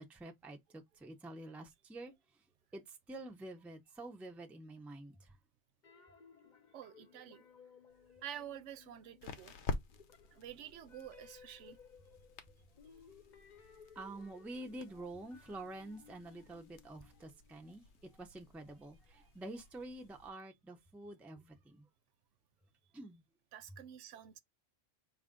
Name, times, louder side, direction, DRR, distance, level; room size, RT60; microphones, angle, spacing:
voice 1, 0.0-2.1 2.7-5.3 14.0-17.8 18.1-21.9 22.9-23.2, right 2 dB, ahead, 0.4 m, -48 dB
sound 1, 5.8-9.6 9.9-17.7, left 7 dB, 45° left, 0.8 m, -61 dB
voice 2, 6.7-7.4 8.2-9.5 10.3-11.8 23.5-24.4, right 10 dB, 80° right, 0.9 m, -49 dB
sound 2, 7.9-20.3, left 4 dB, 70° left, 1.0 m, -50 dB
4.9 x 2.5 x 3.6 m
omnidirectional pair, 1.2 m